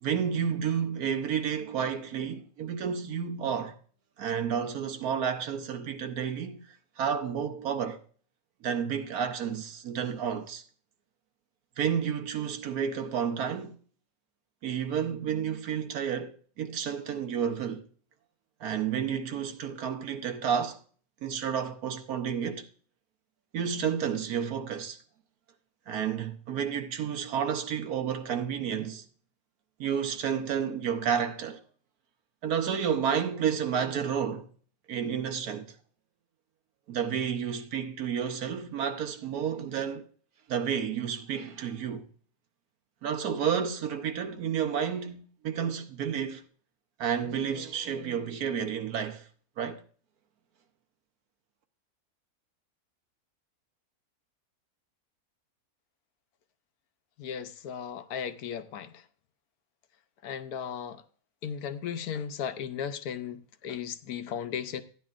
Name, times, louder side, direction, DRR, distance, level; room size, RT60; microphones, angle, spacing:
voice 1, 0.0-3.8 4.2-6.6 7.0-8.0 8.6-10.6 11.8-13.8 14.6-17.9 18.6-20.8 21.2-22.6 23.5-25.0 25.9-29.0 29.8-31.6 32.4-34.5 34.9-35.7 36.9-40.0 40.5-42.1 43.0-46.4 47.0-49.3 49.6-49.8, right 7 dB, 80° right, 1.4 m, -31 dB
voice 2, 57.2-58.9 60.2-61.0 61.4-64.8, left 8 dB, 85° left, 1.2 m, -36 dB
14.5 x 10.0 x 2.5 m
omnidirectional pair, 1.5 m